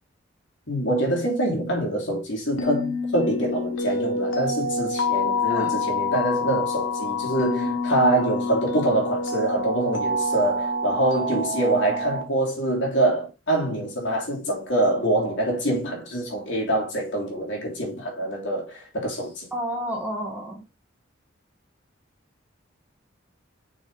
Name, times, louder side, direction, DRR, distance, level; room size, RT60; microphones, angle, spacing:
voice 1, 0.7-19.5, right 1 dB, 65° left, 3.3 m, -25 dB
sound 1, 2.6-12.2, left 2 dB, 80° left, 1.4 m, -27 dB
voice 2, 5.5-5.8 19.5-20.6, equal, 10° right, 1.8 m, -31 dB
6.1 x 5.0 x 3.9 m
head